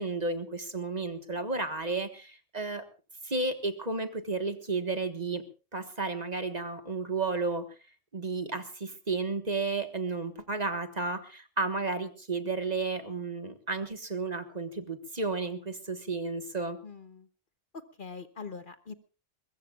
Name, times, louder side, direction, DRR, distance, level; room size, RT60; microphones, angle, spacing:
voice 1, 0.0-2.8 3.2-5.4 5.7-7.7 8.1-16.8, right 3 dB, 35° right, 8 dB, 1.5 m, -32 dB
voice 2, 16.8-17.3 17.7-18.9, left 5 dB, 45° left, 10 dB, 1.0 m, -43 dB
22.0 x 21.5 x 2.4 m, 0.33 s
omnidirectional pair, 1.3 m